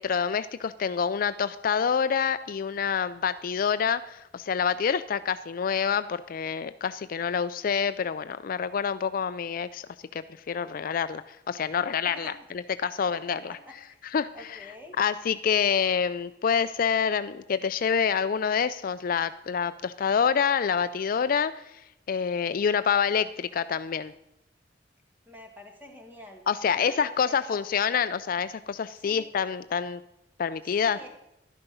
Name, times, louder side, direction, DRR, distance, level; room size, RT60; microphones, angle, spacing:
voice 1, 0.0-9.8 10.1-12.3 12.8-13.5 14.0-14.6 15.0-21.7 22.1-24.1 26.5-30.0 30.4-31.0, left 7 dB, 50° left, 13 dB, 0.4 m, -27 dB
voice 2, 13.1-14.0 14.3-15.0 25.3-26.4 26.7-27.6 28.9-29.3 30.8-31.3, left 1 dB, 10° right, 2 dB, 2.1 m, -46 dB
12.0 x 10.5 x 5.5 m, 0.84 s
head